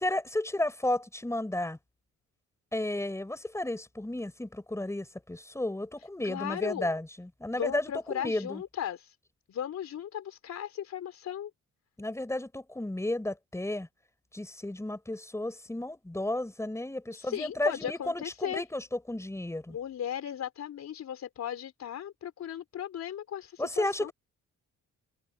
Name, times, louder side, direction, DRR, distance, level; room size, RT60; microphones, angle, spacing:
voice 1, 0.0-1.8 2.7-8.6 12.0-13.9 14.3-19.8 23.6-24.1, left 1 dB, 10° left, 4.7 m, -33 dB
voice 2, 6.2-6.9 7.5-9.2 9.5-11.5 17.1-18.6 19.7-24.1, left 10 dB, 65° left, 3.8 m, -36 dB
cardioid pair, 90°, 30 cm